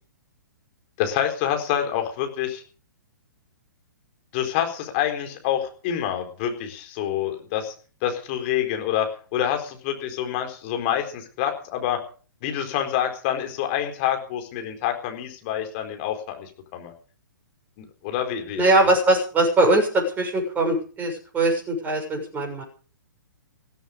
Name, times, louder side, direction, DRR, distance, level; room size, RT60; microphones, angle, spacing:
voice 1, 1.0-2.6 4.3-7.7 8.0-12.0 12.4-16.9 17.8-18.6, left 10 dB, 35° left, 5 dB, 4.3 m, -27 dB
voice 2, 18.6-22.6, right 2 dB, 15° right, 1 dB, 6.8 m, -21 dB
16.0 x 14.5 x 5.2 m, 0.40 s
figure-of-eight pair, 120°, 11 cm